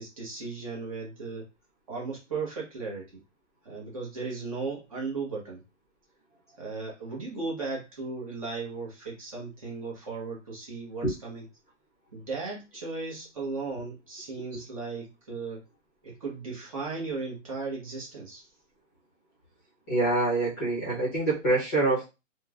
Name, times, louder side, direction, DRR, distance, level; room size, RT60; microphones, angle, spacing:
voice 1, 0.0-1.5 1.9-3.2 3.6-5.6 6.6-11.4 12.1-15.6 16.0-18.5, right 4 dB, 25° right, -3 dB, 0.7 m, -36 dB
voice 2, 19.9-22.1, right 2 dB, 15° left, -8 dB, 0.7 m, -26 dB
3.0 x 2.1 x 2.3 m, 0.26 s
hypercardioid pair, 170°, 38 cm